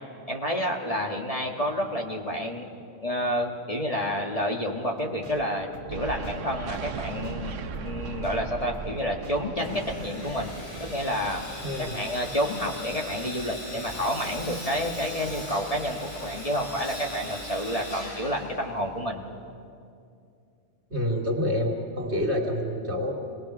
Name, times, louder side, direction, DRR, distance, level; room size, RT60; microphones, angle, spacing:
voice 1, 0.3-2.7 3.0-10.5 10.8-11.4 11.8-19.3, equal, 30° left, 0 dB, 1.6 m, -29 dB
sound 1, 4.9-17.8, right 2 dB, 40° right, 1.8 m, -46 dB
sound 2, 5.9-12.9, right 6 dB, 75° right, 1.2 m, -39 dB
Sawing, 9.6-19.0, equal, 60° left, 7.0 m, -40 dB
voice 2, 11.6-11.9 20.9-23.1, left 1 dB, 60° right, 0 dB, 2.9 m, -27 dB
26.5 x 19.5 x 6.1 m, 2.5 s
omnidirectional pair, 1.3 m